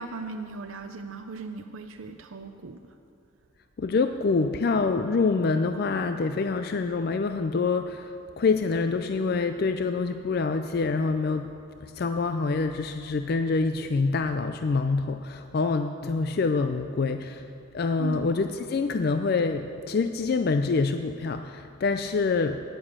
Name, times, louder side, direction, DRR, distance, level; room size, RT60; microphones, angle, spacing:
voice 1, 0.0-2.8 18.0-18.3, right 3 dB, 85° right, 6 dB, 0.5 m, -37 dB
voice 2, 3.8-11.5 11.8-17.5 17.7-22.6, left 4 dB, 50° left, 8 dB, 0.4 m, -26 dB
10.0 x 9.7 x 7.3 m, 2.4 s
head